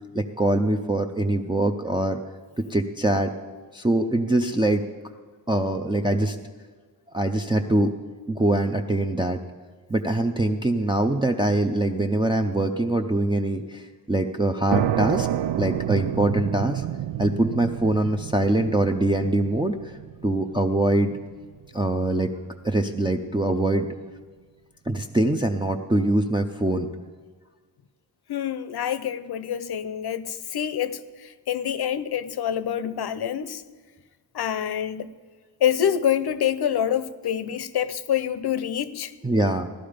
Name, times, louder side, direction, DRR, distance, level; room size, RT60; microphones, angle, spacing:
voice 1, 0.1-2.2 2.7-3.3 3.7-4.8 5.5-6.4 7.1-7.9 8.3-9.4 9.9-15.3 15.6-16.9 17.2-19.8 20.2-21.1 21.7-22.3 22.6-23.9 24.9-26.9 39.2-39.7, right 2 dB, 10° right, 2 dB, 0.5 m, -23 dB
sound 1, 14.7-22.1, right 12 dB, 85° right, 0.6 m, -30 dB
voice 2, 28.3-33.6 34.3-35.1 35.6-39.1, left 9 dB, 65° left, 14 dB, 0.7 m, -26 dB
16.5 x 12.0 x 5.1 m, 1.5 s
wide cardioid pair, 170°, 41 cm